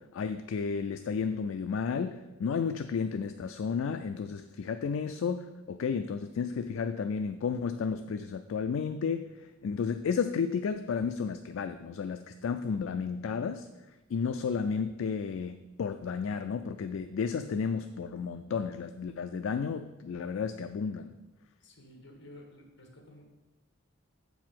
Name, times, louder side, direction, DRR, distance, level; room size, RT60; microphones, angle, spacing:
voice 1, 0.1-13.7 14.1-21.1, left 6 dB, 80° left, 8 dB, 0.4 m, -32 dB
voice 2, 21.6-23.3, left 1 dB, 65° left, 1 dB, 1.4 m, -52 dB
7.4 x 4.7 x 5.8 m, 1.1 s
head